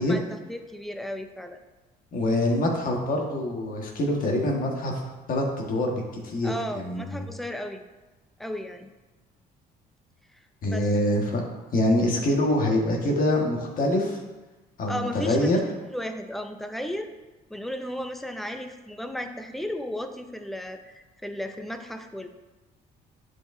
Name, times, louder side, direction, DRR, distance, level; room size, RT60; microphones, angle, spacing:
voice 1, 0.0-1.6 6.4-7.8 8.4-8.9 10.7-10.9 14.9-15.6 15.9-17.1 17.5-22.3, left 1 dB, ahead, 6 dB, 0.6 m, -34 dB
voice 2, 2.1-4.9 5.3-5.9 6.2-7.3 10.6-11.4 11.7-14.2 14.8-15.6, left 1 dB, 55° left, 0 dB, 1.6 m, -25 dB
10.5 x 4.8 x 2.7 m, 1.1 s
cardioid pair, 110°, 17 cm